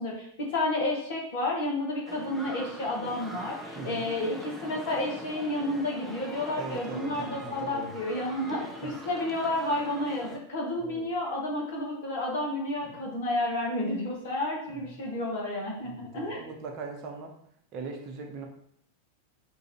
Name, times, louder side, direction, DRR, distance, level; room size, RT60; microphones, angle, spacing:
voice 1, 0.0-16.4, left 1 dB, 55° left, -1 dB, 1.3 m, -31 dB
sound 1, 2.1-10.4, equal, ahead, 0.6 m, -42 dB
voice 2, 6.5-7.9 8.5-8.9 10.8-11.1 12.8-13.0 14.7-15.0 15.9-17.4 17.7-18.5, right 4 dB, 40° right, 2 dB, 0.9 m, -40 dB
3.8 x 2.6 x 4.4 m, 0.69 s
figure-of-eight pair, 90°, 0 cm